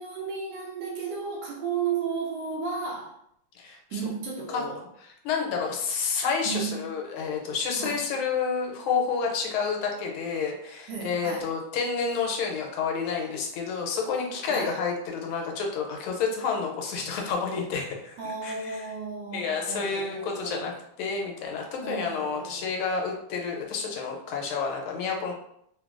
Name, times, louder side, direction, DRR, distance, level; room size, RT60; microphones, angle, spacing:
voice 1, 0.0-3.2 3.9-4.8 6.4-6.8 7.8-8.0 10.9-11.5 14.5-14.8 18.2-20.7 21.8-22.7, right 5 dB, 75° right, -2 dB, 1.1 m, -34 dB
voice 2, 3.5-4.0 4.5-4.6 5.2-18.9 19.3-20.7 21.0-25.3, left 5 dB, 90° left, 2 dB, 1.5 m, -29 dB
3.6 x 2.2 x 2.4 m, 0.73 s
omnidirectional pair, 2.2 m